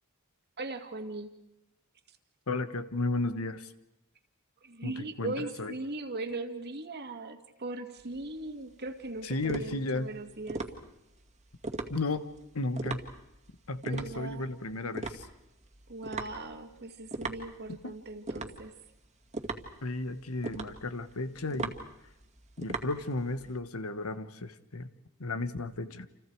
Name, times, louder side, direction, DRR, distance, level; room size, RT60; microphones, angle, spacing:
voice 1, 0.6-1.3 4.6-10.6 13.9-14.5 15.9-18.7, right 2 dB, 50° right, 6 dB, 2.1 m, -39 dB
voice 2, 2.5-3.7 4.8-5.7 9.2-10.1 11.9-12.3 12.5-13.0 13.7-15.3 17.7-18.0 19.8-21.7 22.6-24.9 25.2-26.1, left 2 dB, 90° left, 12 dB, 1.3 m, -34 dB
sound 1, 8.0-23.6, right 3 dB, 30° right, 2.1 m, -40 dB
29.5 x 28.0 x 4.7 m, 0.88 s
head